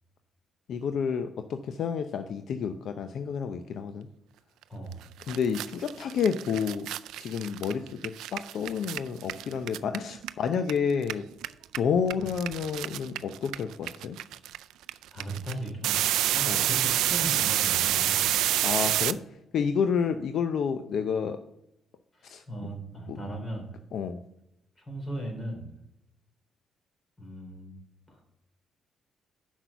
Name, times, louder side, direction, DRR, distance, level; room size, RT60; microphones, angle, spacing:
voice 1, 0.7-4.1 5.3-6.9 7.2-11.2 11.8-14.2 16.5-16.7 18.6-19.2 19.5-21.4 22.2-22.4 23.1-23.2 23.9-24.2, left 6 dB, 70° left, 8 dB, 0.6 m, -29 dB
voice 2, 4.7-5.0 15.1-16.1 16.3-18.2 22.1-23.8 24.8-25.7 27.2-27.8 28.1-28.2, right 1 dB, 25° left, 1 dB, 3.7 m, -37 dB
sound 1, 4.9-5.0 5.2-10.7 11.0-19.1, right 13 dB, 85° right, 0.3 m, -28 dB
6.2 x 6.1 x 6.8 m, 0.81 s
cardioid pair, 90°, 0 cm